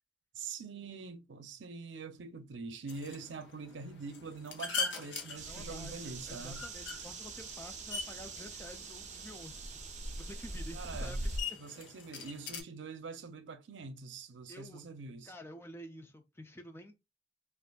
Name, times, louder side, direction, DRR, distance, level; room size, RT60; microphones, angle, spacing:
voice 1, 0.3-6.6 10.7-11.3 11.6-15.3, right 4 dB, 80° right, 0.6 m, -44 dB
sound 1, 2.9-12.6, left 5 dB, 85° left, 0.8 m, -43 dB
sound 2, 5.3-11.4, right 2 dB, 35° right, 0.6 m, -42 dB
voice 2, 5.5-9.6 10.2-11.6 14.5-14.8 15.3-17.0, left 1 dB, 15° left, 0.4 m, -50 dB
5.1 x 2.5 x 2.3 m
head